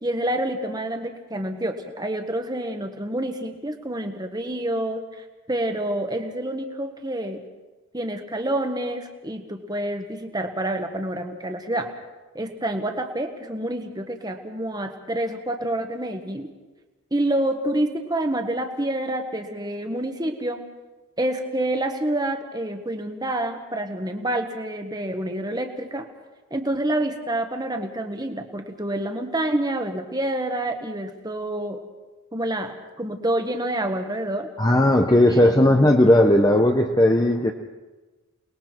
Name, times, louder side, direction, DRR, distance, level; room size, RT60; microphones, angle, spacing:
voice 1, 0.0-7.4 7.9-11.9 12.3-16.5 17.1-20.6 21.2-26.1 26.5-31.8 32.3-34.5 35.3-35.7, right 1 dB, 20° right, 5 dB, 1.4 m, -28 dB
voice 2, 34.6-37.5, left 1 dB, 15° left, 3 dB, 0.8 m, -17 dB
28.5 x 20.5 x 4.5 m, 1.2 s
head